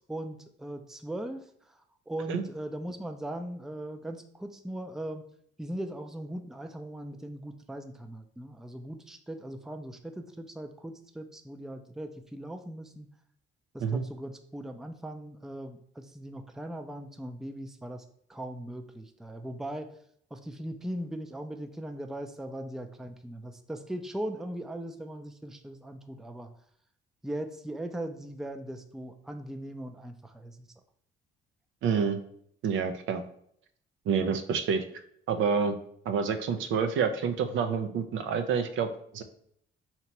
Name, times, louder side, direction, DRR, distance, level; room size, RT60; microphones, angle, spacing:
voice 1, 0.0-1.8 2.1-5.3 5.6-13.1 13.7-18.0 18.3-19.9 20.3-26.5 27.2-30.7, right 1 dB, ahead, 6 dB, 0.4 m, -39 dB
voice 2, 31.8-32.2 32.6-33.2 34.1-34.8 35.3-35.8 36.1-39.2, right 6 dB, 75° right, 8 dB, 0.5 m, -28 dB
2.9 x 2.9 x 4.4 m, 0.67 s
cardioid pair, 90°, 20 cm